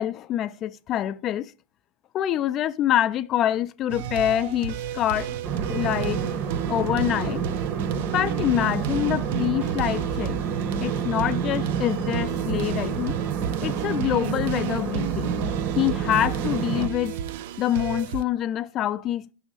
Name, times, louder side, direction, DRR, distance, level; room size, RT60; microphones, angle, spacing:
voice 1, 0.0-1.5 2.1-5.3 5.7-6.2 6.7-7.4 8.1-10.4 10.8-13.2 13.6-15.3 15.8-17.2 17.6-19.3, left 11 dB, 35° left, 0.4 m, -25 dB
sound 1, 3.9-18.2, right 9 dB, 60° right, 0.4 m, -33 dB
sound 2, 5.4-16.9, right 6 dB, 40° right, 0.7 m, -29 dB
6.2 x 3.1 x 5.2 m
hypercardioid pair, 105°, 0 cm